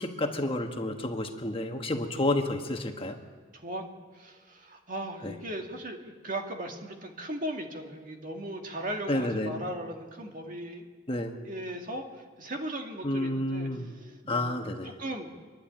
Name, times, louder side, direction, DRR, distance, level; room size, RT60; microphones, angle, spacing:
voice 1, 0.0-3.2 5.2-5.3 9.1-9.6 11.1-11.3 13.0-13.9 14.3-14.9, left 1 dB, 30° left, 4 dB, 1.4 m, -30 dB
voice 2, 3.5-3.9 4.1-10.9 11.4-14.6 15.0-15.3, right 1 dB, 45° right, 3 dB, 2.1 m, -38 dB
26.5 x 11.5 x 8.8 m, 1.5 s
head